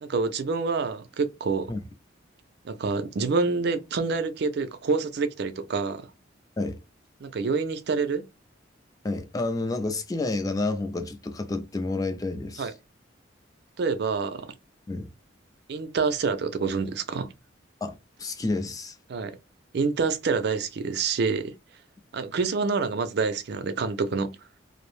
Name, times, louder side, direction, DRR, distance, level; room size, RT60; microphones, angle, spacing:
voice 1, 0.0-1.7 2.6-6.1 7.2-8.2 12.6-12.7 13.8-14.5 15.7-17.3 19.1-19.4 19.7-21.5 22.1-24.3, right 4 dB, 60° right, 0.4 m, -27 dB
voice 2, 9.0-12.7 14.9-15.1 17.8-19.0, left 2 dB, 20° left, 0.4 m, -30 dB
2.5 x 2.0 x 3.0 m
head